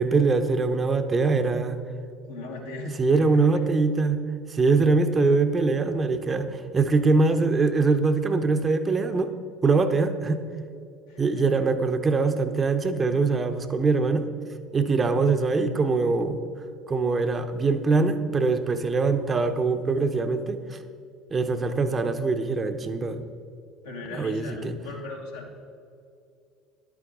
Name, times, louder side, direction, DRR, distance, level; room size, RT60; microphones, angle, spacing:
voice 1, 0.0-1.8 3.0-4.2 4.5-9.3 9.6-10.4 11.2-14.3 14.7-16.4 16.9-20.8 21.3-23.2 24.1-24.8, right 4 dB, 30° right, 9 dB, 0.7 m, -23 dB
voice 2, 2.2-3.2 3.5-3.6 11.1-11.7 23.8-25.5, left 2 dB, 80° left, -2 dB, 1.7 m, -38 dB
11.0 x 8.5 x 3.8 m, 2.4 s
figure-of-eight pair, 65°, 0 cm